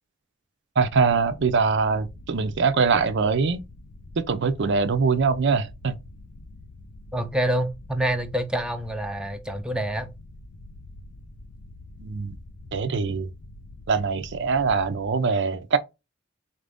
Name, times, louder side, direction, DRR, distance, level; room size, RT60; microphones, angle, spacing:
sound 1, 0.8-15.1, left 2 dB, 70° left, 0.6 m, -45 dB
voice 1, 0.8-3.6 4.2-6.0 12.0-12.4 12.7-13.3 13.9-15.8, right 4 dB, 60° right, 0.5 m, -23 dB
voice 2, 7.1-10.1, right 1 dB, 5° right, 0.4 m, -27 dB
4.2 x 2.6 x 3.4 m
head